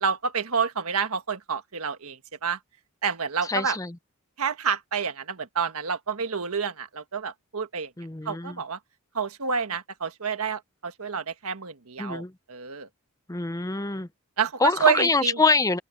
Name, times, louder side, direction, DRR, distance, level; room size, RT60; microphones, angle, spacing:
voice 1, 0.0-2.6 3.0-3.8 4.4-7.9 8.2-8.8 9.1-12.9 14.4-15.4, right 6 dB, 75° right, 1.5 m, -28 dB
voice 2, 3.5-4.0 8.0-8.6 12.0-12.3 13.3-14.1 14.6-15.8, left 3 dB, 15° left, 0.7 m, -25 dB
open air
head